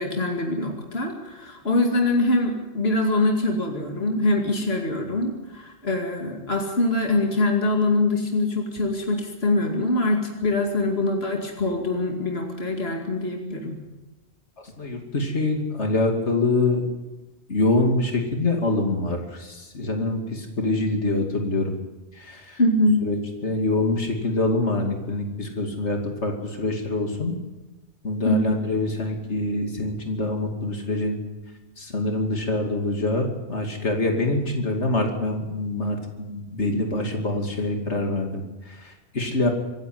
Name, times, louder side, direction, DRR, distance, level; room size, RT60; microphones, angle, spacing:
voice 1, 0.0-13.8 22.6-23.0 28.2-28.7, left 2 dB, 65° left, 2 dB, 2.7 m, -23 dB
voice 2, 14.8-16.8 17.5-21.8 22.1-22.6 23.0-23.2 23.4-27.4 28.0-31.2 31.8-39.5, left 2 dB, 80° left, 3 dB, 2.9 m, -25 dB
25.5 x 11.0 x 9.5 m, 1.1 s
omnidirectional pair, 1.2 m